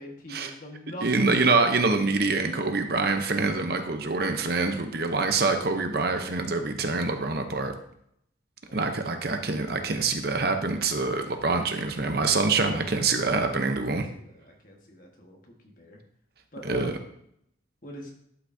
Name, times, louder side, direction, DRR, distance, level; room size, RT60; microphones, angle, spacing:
voice 1, 0.0-1.3 8.7-8.9 13.9-16.0 16.5-17.0 17.8-18.1, equal, 45° left, 0 dB, 1.5 m, -43 dB
voice 2, 1.0-7.7 8.7-14.1 16.6-16.9, right 3 dB, 50° right, 6 dB, 0.7 m, -25 dB
11.5 x 5.9 x 2.7 m, 0.71 s
head